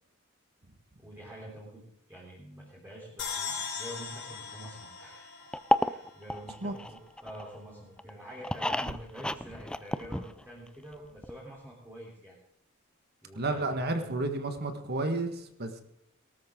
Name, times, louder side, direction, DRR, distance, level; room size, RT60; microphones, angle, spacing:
voice 1, 1.0-1.8 2.1-5.3 5.8-12.4 13.2-14.1, right 1 dB, 10° right, -5 dB, 3.5 m, -47 dB
sound 1, 3.2-6.5, left 6 dB, 60° left, 5.3 m, -39 dB
sound 2, 5.5-7.6 8.0-10.7 10.9-11.0 11.2-11.3, left 1 dB, 5° left, 0.4 m, -31 dB
voice 2, 13.3-15.8, right 2 dB, 50° right, 7 dB, 1.6 m, -31 dB
18.5 x 13.0 x 3.8 m, 0.74 s
head